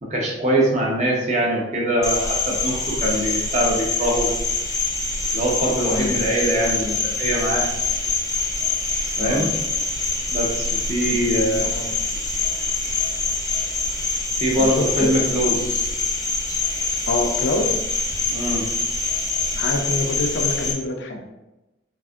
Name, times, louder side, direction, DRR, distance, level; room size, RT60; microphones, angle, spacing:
voice 1, 0.0-4.3 5.3-7.7 9.2-9.5 10.3-11.6 14.4-15.9 18.3-18.6, right 1 dB, 40° right, -3 dB, 0.9 m, -23 dB
Cricket, 2.0-20.7, left 3 dB, 20° left, 0.7 m, -25 dB
voice 2, 5.9-6.2 9.2-9.5 11.1-11.2 11.6-11.9 14.5-15.2 17.1-17.8 19.5-21.2, left 2 dB, 80° left, 4 dB, 0.6 m, -26 dB
5.4 x 2.7 x 2.4 m, 0.98 s
head